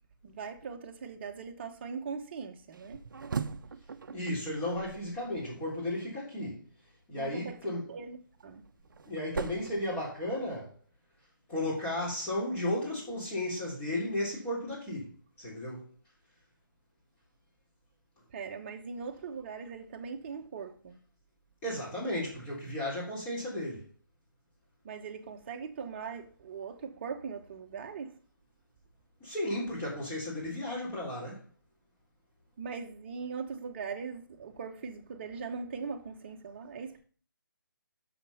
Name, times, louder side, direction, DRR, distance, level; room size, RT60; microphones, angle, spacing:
voice 1, 0.2-3.0 7.2-8.7 18.3-21.0 24.8-28.2 32.6-37.0, right 5 dB, 30° right, 1.1 m, -40 dB
sound 1, 2.7-5.9 8.1-10.6, right 5 dB, 65° right, 0.6 m, -41 dB
voice 2, 4.1-6.6 7.1-7.8 9.0-10.7 11.5-15.1 15.4-15.8 21.6-23.9 29.2-31.4, left 1 dB, 15° left, 3.3 m, -34 dB
6.7 x 5.8 x 5.6 m
figure-of-eight pair, 160°, 12 cm